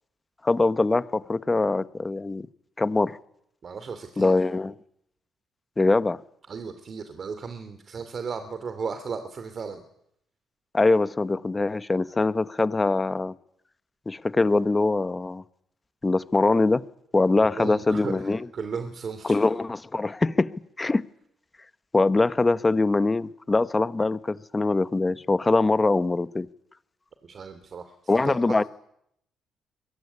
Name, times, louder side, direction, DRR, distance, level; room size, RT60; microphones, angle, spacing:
voice 1, 0.4-2.5 2.8-3.2 4.2-4.7 5.8-6.2 10.7-13.3 14.1-15.4 16.0-16.8 17.1-18.5 19.2-21.0 21.9-26.5 28.1-28.6, left 3 dB, 20° left, 1.1 m, -23 dB
voice 2, 3.6-4.3 6.5-9.8 17.3-19.4 27.2-28.6, right 5 dB, 50° right, 3.0 m, -35 dB
24.0 x 22.0 x 9.9 m
cardioid pair, 90°, 0 cm